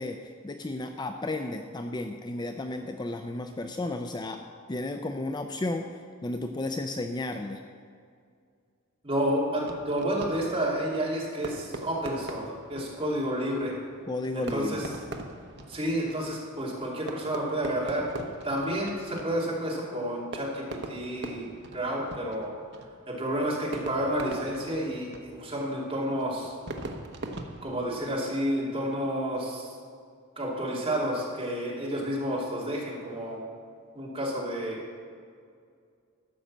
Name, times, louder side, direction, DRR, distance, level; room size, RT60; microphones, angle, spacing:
voice 1, 0.0-4.4 4.7-7.6 14.1-14.8, left 2 dB, 20° left, 6 dB, 0.4 m, -33 dB
voice 2, 9.0-13.7 14.3-14.9 15.7-18.0 18.4-22.5 23.1-26.5 27.6-29.7 30.4-33.4 33.9-34.8, equal, 25° right, -4 dB, 2.7 m, -30 dB
Fireworks, 9.6-28.4, right 2 dB, 55° right, 1.0 m, -42 dB
13.0 x 5.5 x 7.4 m, 2.2 s
head